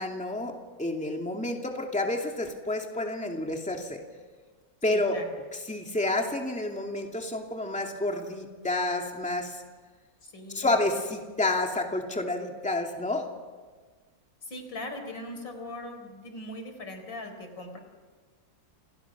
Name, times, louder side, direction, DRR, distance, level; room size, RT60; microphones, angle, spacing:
voice 1, 0.0-4.0 4.8-5.2 5.7-9.6 10.5-13.2, left 2 dB, 5° left, 2 dB, 2.5 m, -29 dB
voice 2, 4.9-5.3 10.2-10.8 14.4-17.8, left 1 dB, 85° left, 5 dB, 5.0 m, -40 dB
29.0 x 28.5 x 6.2 m, 1.5 s
omnidirectional pair, 2.0 m